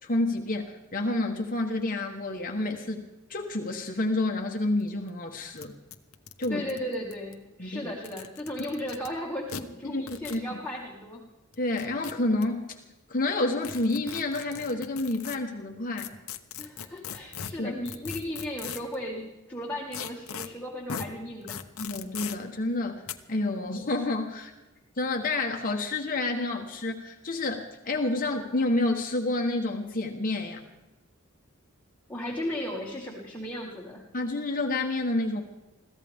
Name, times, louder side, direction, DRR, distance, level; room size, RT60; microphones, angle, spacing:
voice 1, 0.0-5.7 6.4-6.6 7.6-7.9 9.8-10.0 10.3-10.6 11.6-12.8 13.1-16.1 17.6-17.7 21.8-24.5 25.0-30.6 34.1-35.4, left 2 dB, 40° left, 3 dB, 1.2 m, -29 dB
sound 1, 4.8-4.9 5.1-5.2 5.6-5.7 5.9-7.3 7.9-9.1 9.5-9.6 10.1-10.4 11.5-12.4 13.6-15.4 16.0-19.0 19.9-20.5 20.9-21.1 21.5-22.4 23.1-23.2, left 8 dB, 90° left, 1.0 m, -38 dB
voice 2, 6.5-11.2 16.6-21.6 32.1-34.0, left 1 dB, 10° left, -3 dB, 2.0 m, -36 dB
22.0 x 15.5 x 3.6 m, 1.1 s
head